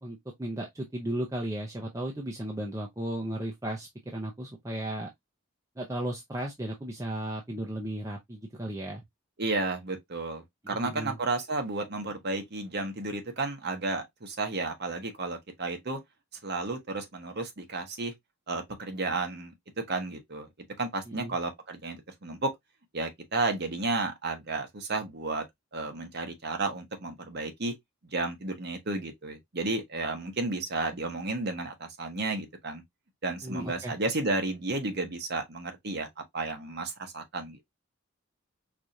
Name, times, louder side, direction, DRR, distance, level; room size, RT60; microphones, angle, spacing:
voice 1, 0.0-5.1 5.8-9.0 10.6-11.2 21.1-21.4 33.4-33.9, right 1 dB, 15° right, 0.6 m, -35 dB
voice 2, 9.4-16.0 16.4-18.1 18.5-19.5 19.9-20.5 20.8-22.5 22.9-25.4 25.7-27.7 28.1-32.8 33.2-36.1 36.3-37.6, right 3 dB, 50° right, 1.0 m, -32 dB
4.7 x 2.5 x 2.7 m
head